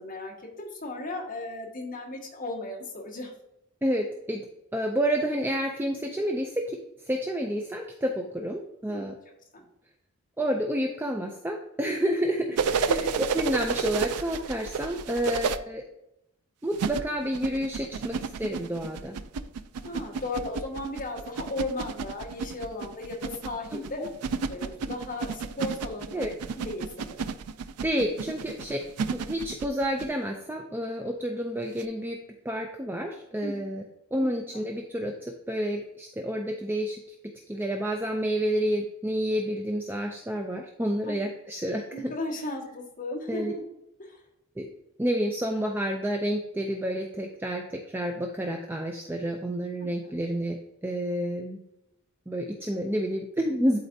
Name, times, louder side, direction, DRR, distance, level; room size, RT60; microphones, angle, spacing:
voice 1, 0.0-3.3 8.9-9.1 9.5-9.6 12.4-13.1 19.8-24.1 24.5-26.2 26.6-27.3 33.4-33.6 34.2-34.6 41.0-41.2 41.9-43.6 44.0-44.2 49.8-50.1, left 2 dB, 40° left, -3 dB, 1.6 m, -36 dB
voice 2, 3.8-4.5 4.7-6.8 7.0-9.2 10.4-15.8 16.6-19.2 23.7-24.1 26.1-26.3 27.8-28.8 29.1-33.8 34.1-37.0 37.5-42.1 43.3-43.5 44.6-44.7 45.0-50.6 50.8-51.6 52.3-53.8, equal, 10° right, 2 dB, 0.3 m, -29 dB
sound 1, 12.6-15.6 16.7-30.1 31.8-31.9, right 5 dB, 85° right, 0.4 m, -31 dB
11.0 x 4.1 x 2.7 m, 0.85 s
head